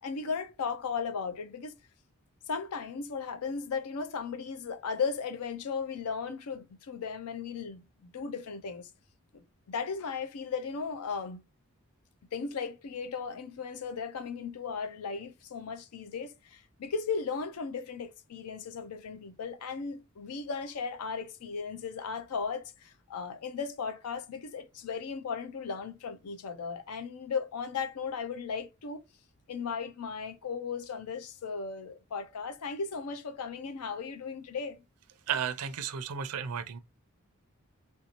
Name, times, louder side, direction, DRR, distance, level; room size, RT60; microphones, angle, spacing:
voice 1, 0.0-1.7 2.5-8.9 9.3-11.4 12.3-29.0 29.5-34.8, left 5 dB, 85° left, 0.5 m, -36 dB
voice 2, 35.3-36.8, right 7 dB, 90° right, 0.5 m, -33 dB
3.3 x 2.7 x 2.9 m
head